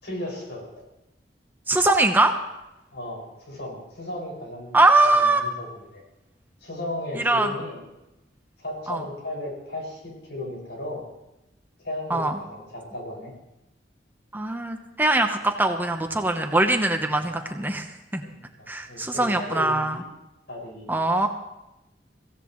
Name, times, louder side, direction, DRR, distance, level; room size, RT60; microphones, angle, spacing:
voice 1, 0.0-0.8 2.9-5.7 5.9-6.0 6.6-7.8 8.6-11.0 11.8-13.3 17.2-17.3 18.2-20.0 20.5-21.3, left 1 dB, 75° left, -1 dB, 5.9 m, -35 dB
voice 2, 1.7-2.3 4.7-5.4 7.2-7.5 8.9-9.0 12.1-12.4 14.3-17.8 18.1-18.2 18.7-20.0 20.9-21.3, right 2 dB, 10° right, 5 dB, 0.9 m, -21 dB
23.0 x 16.0 x 3.1 m, 0.94 s
head